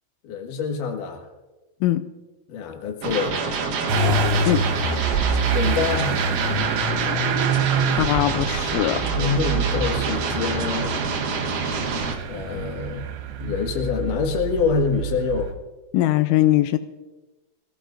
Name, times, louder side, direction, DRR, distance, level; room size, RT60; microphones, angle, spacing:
voice 1, 0.2-1.3 2.5-3.4 5.5-6.3 9.1-11.0 12.3-13.1 13.4-15.5, left 5 dB, 60° left, 2.3 m, -26 dB
sound 1, 3.0-12.1, right 5 dB, 65° right, 2.1 m, -27 dB
Motor vehicle (road) / Engine starting, 3.9-15.5, right 4 dB, 85° right, 3.9 m, -26 dB
voice 2, 8.0-9.1 15.9-16.8, left 14 dB, 85° left, 3.1 m, -20 dB
22.5 x 16.0 x 2.5 m
omnidirectional pair, 5.8 m